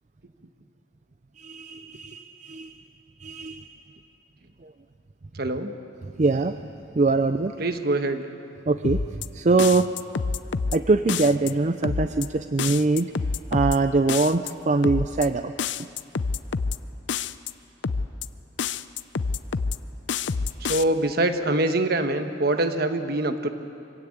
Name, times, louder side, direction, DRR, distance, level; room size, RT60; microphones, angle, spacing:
voice 1, 1.4-2.8 3.2-3.6 4.6-4.7 6.2-6.6 6.9-7.5 8.7-9.0 9.3-9.9 10.7-13.1 13.5-15.5, right 3 dB, 40° right, 9 dB, 0.5 m, -23 dB
voice 2, 5.4-5.7 7.6-8.2 20.7-23.5, right 2 dB, 55° right, 7 dB, 1.3 m, -24 dB
sound 1, 8.8-9.3 9.6-10.8 11.1-11.5 11.8-12.3 12.6-13.8 14.1-14.5 14.8-15.3 15.6-16.8 17.1-17.5 17.8-18.3 18.6-19.8 20.1-20.8, left 5 dB, 75° left, 0.6 m, -27 dB
24.5 x 16.5 x 8.6 m, 2.6 s
head